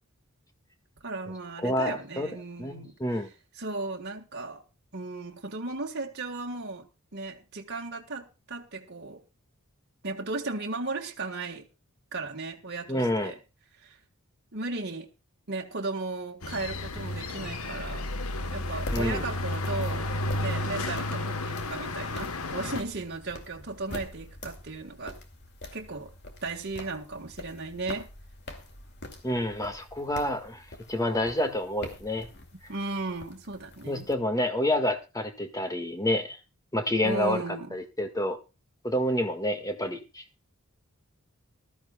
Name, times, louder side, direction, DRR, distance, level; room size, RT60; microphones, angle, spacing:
voice 1, 1.0-2.9 3.6-4.6 4.9-9.2 10.0-11.7 12.1-13.4 13.8-14.0 14.5-15.1 15.5-18.1 18.5-20.1 20.4-25.2 25.7-26.1 26.4-28.1 32.7-34.1 37.0-37.8, right 3 dB, 50° right, 1.6 m, -36 dB
voice 2, 1.6-2.3 2.6-3.3 12.9-13.3 18.9-19.2 29.2-32.3 33.8-36.4 36.7-37.4 37.7-38.4 38.8-40.2, left 1 dB, 15° left, 1.8 m, -28 dB
sound 1, 16.4-22.8, left 2 dB, 80° left, 1.3 m, -32 dB
sound 2, 18.7-34.1, left 1 dB, 50° left, 2.6 m, -45 dB
19.5 x 13.5 x 2.3 m
head